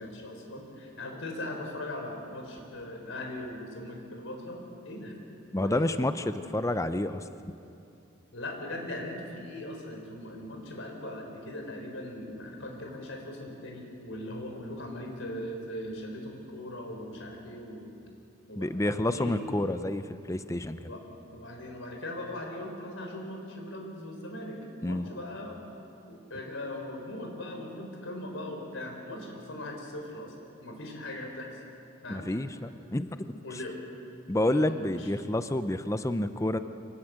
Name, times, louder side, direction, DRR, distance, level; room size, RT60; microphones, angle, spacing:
voice 1, 0.0-5.2 5.5-5.9 8.3-17.9 18.5-19.4 20.7-21.0 21.3-25.6 26.0-30.3 30.6-31.6 32.0-32.3 33.4-33.8 34.4-35.1, left 1 dB, 85° left, 2 dB, 4.4 m, -40 dB
voice 2, 5.5-7.2 18.6-20.9 24.8-25.1 32.1-33.4 34.3-36.6, left 1 dB, 15° left, 10 dB, 0.6 m, -29 dB
25.0 x 19.5 x 8.0 m, 2.7 s
head